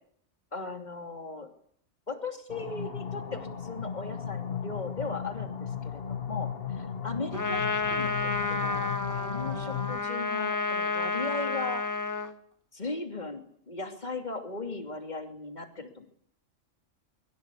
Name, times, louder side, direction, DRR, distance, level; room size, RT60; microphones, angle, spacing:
voice 1, 0.5-1.5 2.1-11.8 12.7-16.1, left 3 dB, 35° left, 5 dB, 3.0 m, -38 dB
sound 1, 2.5-10.0, left 7 dB, 50° left, 1.5 m, -36 dB
Trumpet, 7.3-12.3, left 4 dB, 15° left, 1.9 m, -30 dB
25.5 x 22.5 x 8.4 m, 0.66 s
omnidirectional pair, 1.3 m